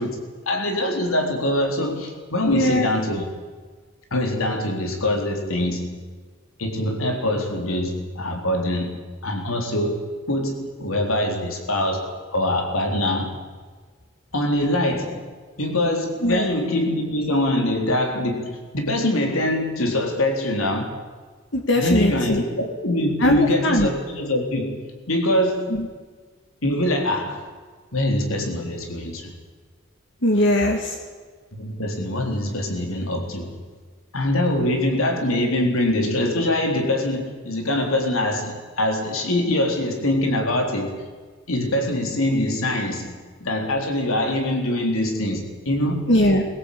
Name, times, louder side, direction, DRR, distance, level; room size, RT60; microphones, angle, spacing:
voice 1, 0.0-3.3 4.1-6.0 6.6-13.3 14.3-15.2 15.6-21.0 21.8-25.8 26.6-27.5 27.9-29.3 31.5-33.6 34.1-41.0 41.5-46.1, left 1 dB, 85° left, 3 dB, 3.7 m, -24 dB
voice 2, 2.5-2.9 16.2-16.5 21.5-22.4 23.2-23.9 25.7-25.9 30.2-31.0 46.1-46.4, left 1 dB, 60° left, 2 dB, 2.1 m, -19 dB
21.5 x 17.0 x 8.5 m, 1.5 s
head